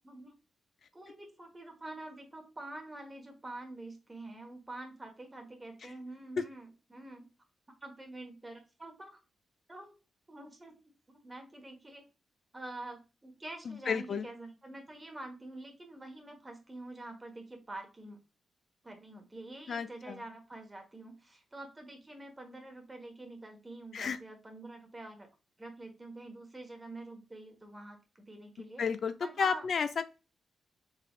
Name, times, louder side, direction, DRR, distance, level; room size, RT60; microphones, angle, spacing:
voice 1, 0.9-7.3 7.8-9.2 9.7-9.9 10.3-10.8 11.1-12.1 12.5-18.2 18.8-25.3 25.6-28.8 29.2-29.7, right 2 dB, 20° right, 4 dB, 1.3 m, -46 dB
voice 2, 13.7-14.3 19.7-20.2 23.9-24.2 28.8-30.0, left 6 dB, 65° left, 11 dB, 0.3 m, -32 dB
3.7 x 3.6 x 2.4 m, 0.31 s
cardioid pair, 80°, 0 cm